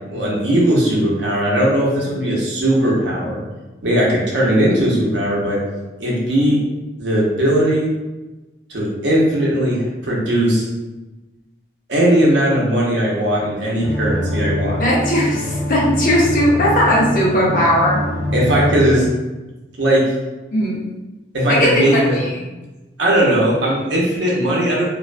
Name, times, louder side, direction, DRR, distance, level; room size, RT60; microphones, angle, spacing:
voice 1, 0.1-3.4 3.8-5.6 6.0-6.6 7.0-7.9 8.7-10.7 11.9-14.8 18.3-19.1 19.8-20.1 21.3-22.2 23.0-24.9, right 1 dB, 90° right, -4 dB, 0.7 m, -18 dB
sound 1, 13.8-19.0, equal, 85° left, 0.4 m, -23 dB
voice 2, 14.8-18.0 20.5-20.8 21.5-22.3, equal, 50° left, -4 dB, 0.6 m, -17 dB
2.4 x 2.2 x 2.4 m, 1.1 s
head